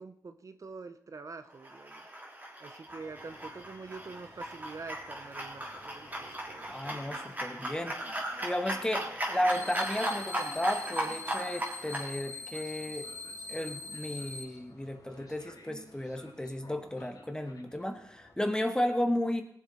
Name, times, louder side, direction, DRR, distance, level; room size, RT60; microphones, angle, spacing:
voice 1, 0.0-2.0 2.6-6.7, right 4 dB, 50° right, 9 dB, 0.9 m, -46 dB
sound 1, 1.6-12.1, right 1 dB, 25° right, 3.5 m, -37 dB
Train, 2.9-18.3, left 2 dB, 65° left, 2.9 m, -55 dB
voice 2, 6.7-13.1 13.5-19.4, left 1 dB, 10° left, 6 dB, 1.8 m, -33 dB
sound 2, 9.5-14.4, left 3 dB, 30° left, 2.3 m, -43 dB
18.5 x 7.3 x 4.3 m, 0.72 s
cardioid pair, 60°, 7 cm